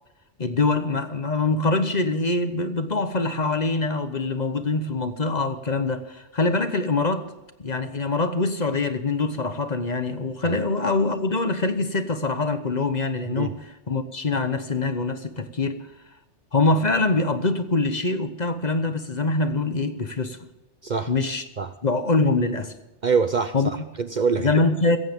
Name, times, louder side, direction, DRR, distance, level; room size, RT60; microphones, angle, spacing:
voice 1, 0.4-7.3 7.6-13.6 13.9-15.8 16.5-20.4 21.1-21.4 21.8-22.7 23.5-23.7 24.4-25.0, left 3 dB, 40° left, 10 dB, 1.0 m, -24 dB
voice 2, 20.8-21.1 21.6-21.7 23.0-24.5, right 5 dB, 50° right, 11 dB, 0.7 m, -25 dB
16.5 x 14.5 x 3.6 m, 1.0 s
omnidirectional pair, 1.2 m